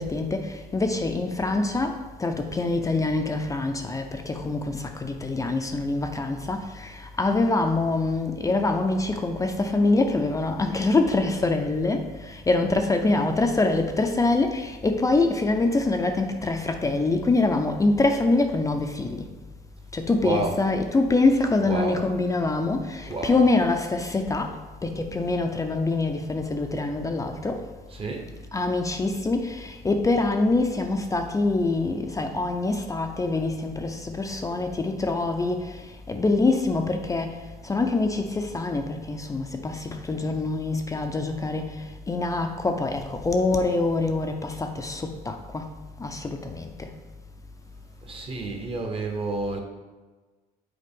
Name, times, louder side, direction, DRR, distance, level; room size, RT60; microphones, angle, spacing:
voice 1, 0.0-19.3 19.9-27.7 28.5-35.8 36.1-37.4 37.6-45.7 46.0-46.9, left 3 dB, 20° left, 0.5 m, -25 dB
voice 2, 20.2-20.6 21.6-22.0 23.0-23.4 27.9-28.3 48.0-49.6, right 2 dB, 35° right, 1.0 m, -30 dB
6.6 x 4.2 x 3.6 m
cardioid pair, 110°, 17 cm